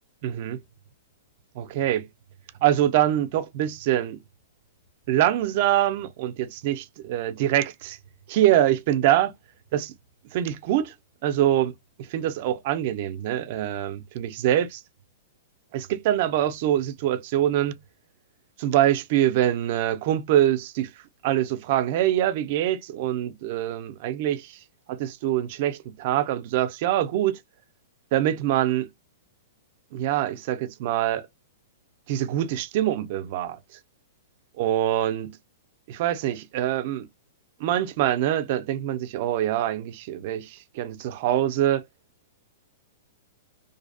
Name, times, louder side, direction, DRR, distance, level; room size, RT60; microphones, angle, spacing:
voice 1, 0.2-0.6 1.6-2.1 2.6-4.2 5.1-8.0 8.3-9.3 9.7-9.9 10.3-10.9 11.2-11.7 12.1-14.8 15.7-17.8 18.6-20.9 21.2-24.6 24.9-27.4 28.1-28.9 29.9-31.3 32.1-33.6 34.6-35.4 35.9-37.1 37.6-41.8, right 12 dB, 35° right, 0.3 m, -24 dB
2.5 x 2.0 x 2.5 m
hypercardioid pair, 180°, 0 cm